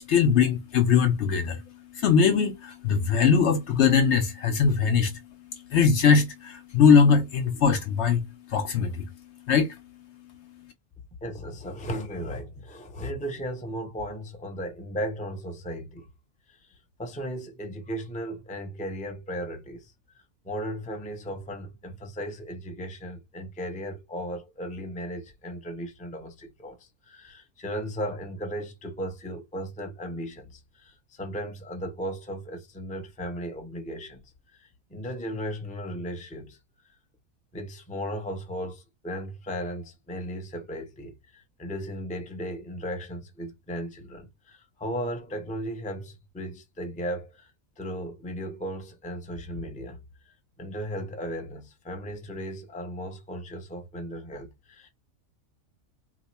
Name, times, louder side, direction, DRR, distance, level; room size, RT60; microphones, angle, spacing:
voice 1, 0.0-1.6 1.9-5.2 5.7-9.1 9.5-9.7, left 6 dB, 65° left, 0.8 m, -21 dB
voice 2, 11.2-16.1 16.5-34.2 34.5-36.6 37.5-50.0 50.6-54.9, equal, 10° left, 0.4 m, -36 dB
2.9 x 2.2 x 4.1 m
omnidirectional pair, 1.5 m